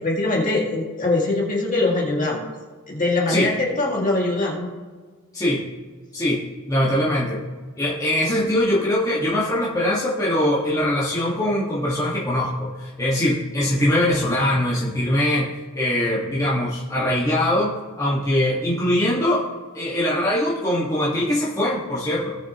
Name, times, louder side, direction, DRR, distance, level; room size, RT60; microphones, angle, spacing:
voice 1, 0.0-2.4 2.9-4.7, left 2 dB, 35° left, -3 dB, 2.2 m, -22 dB
voice 2, 6.7-7.4 7.8-17.7 18.0-19.4 19.7-22.4, left 1 dB, 15° left, -7 dB, 1.7 m, -22 dB
18.5 x 6.4 x 3.0 m, 1.4 s
head